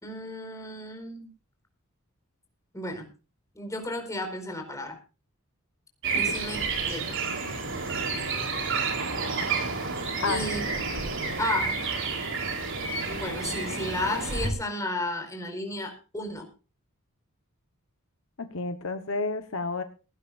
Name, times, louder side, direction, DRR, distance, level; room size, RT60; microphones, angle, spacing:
voice 1, 0.0-1.3 2.7-3.1 3.5-5.0 6.1-6.6 6.9-7.2 10.2-10.6 11.4-11.8 13.1-16.5, left 1 dB, 15° left, 4 dB, 4.7 m, -33 dB
sound 1, 6.0-14.5, right 4 dB, 55° right, 4.1 m, -30 dB
voice 2, 18.4-19.8, left 3 dB, 60° left, 8 dB, 1.2 m, -30 dB
19.0 x 17.0 x 2.6 m, 0.33 s
head